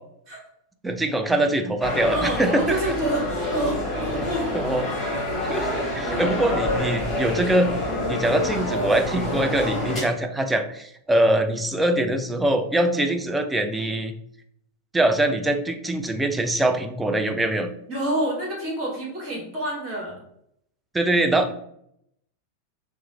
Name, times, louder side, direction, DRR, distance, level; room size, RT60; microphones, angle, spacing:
voice 1, 0.8-2.9 4.5-4.8 5.5-7.7 8.1-14.2 14.9-17.7 20.9-21.5, right 1 dB, 10° right, 6 dB, 0.3 m, -23 dB
sound 1, 1.8-10.0, left 1 dB, 10° left, 1.2 m, -27 dB
voice 2, 2.1-4.5 17.9-20.2, right 1 dB, 35° right, -4 dB, 1.4 m, -28 dB
3.0 x 2.1 x 3.2 m, 0.72 s
figure-of-eight pair, 90°, 0 cm